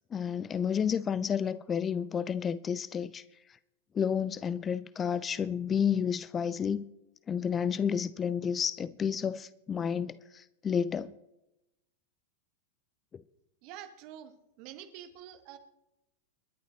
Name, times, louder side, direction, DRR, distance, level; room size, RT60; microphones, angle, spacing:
voice 1, 0.1-3.2 3.9-6.8 7.3-11.1, left 7 dB, 20° left, 0.4 m, -31 dB
voice 2, 13.6-14.3 14.6-15.6, right 10 dB, 45° right, 1.4 m, -46 dB
29.0 x 11.0 x 2.9 m
figure-of-eight pair, 90°, 0 cm